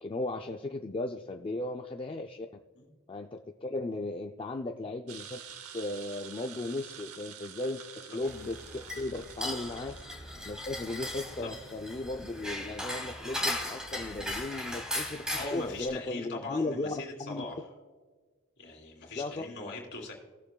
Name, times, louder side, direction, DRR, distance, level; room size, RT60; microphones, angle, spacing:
voice 1, 0.0-2.5 3.1-5.4 5.7-7.8 8.1-10.0 10.5-16.9 17.2-17.4 19.2-19.4, left 2 dB, 25° left, 3 dB, 0.3 m, -36 dB
sound 1, 5.1-10.1, right 8 dB, 75° right, 0.8 m, -47 dB
sound 2, 8.2-15.9, left 1 dB, 5° right, 2.0 m, -37 dB
voice 2, 15.3-17.6 18.6-20.1, left 3 dB, 50° left, -1 dB, 2.9 m, -41 dB
18.5 x 7.0 x 2.2 m, 1.4 s
head